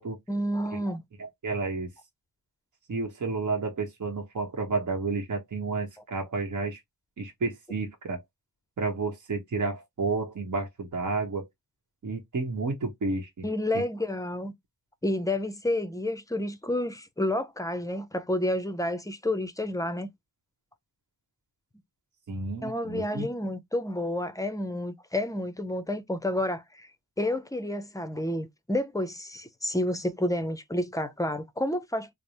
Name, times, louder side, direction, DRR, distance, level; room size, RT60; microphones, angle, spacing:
voice 1, 0.3-1.0 13.4-14.5 15.0-20.1 22.6-26.9 27.2-32.1, left 1 dB, 10° left, 0.5 m, -30 dB
voice 2, 1.2-1.9 2.9-6.8 7.2-8.2 8.8-11.5 12.0-13.5 13.7-13.8 22.3-23.3, right 3 dB, 60° right, 1.0 m, -31 dB
3.3 x 2.0 x 4.1 m
wide cardioid pair, 105°, 35 cm